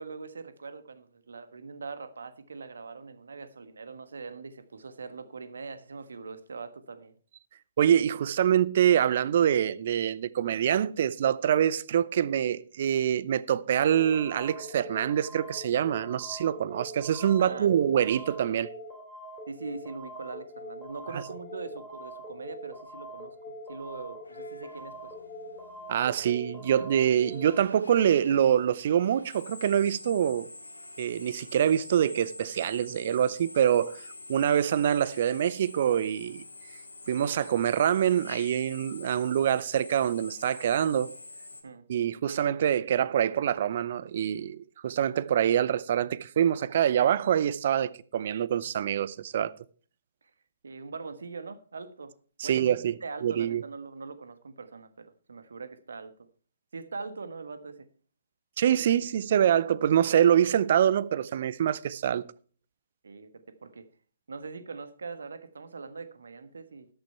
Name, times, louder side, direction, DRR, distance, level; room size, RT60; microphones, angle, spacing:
voice 1, 0.0-7.1 17.4-17.7 19.5-25.1 41.6-41.8 50.6-52.1 52.4-56.1 56.7-57.9 63.0-63.9 64.3-66.9, right 4 dB, 65° right, 1.4 m, -42 dB
voice 2, 7.8-18.7 25.9-30.5 31.0-34.0 34.3-36.4 37.1-41.1 41.9-49.6 52.4-53.6 58.6-62.2, right 9 dB, 50° right, 0.6 m, -25 dB
sound 1, 13.9-27.6, equal, ahead, 3.5 m, -43 dB
Drill, 24.2-41.6, left 3 dB, 75° left, 1.9 m, -47 dB
13.0 x 9.0 x 4.5 m
figure-of-eight pair, 125°, 0 cm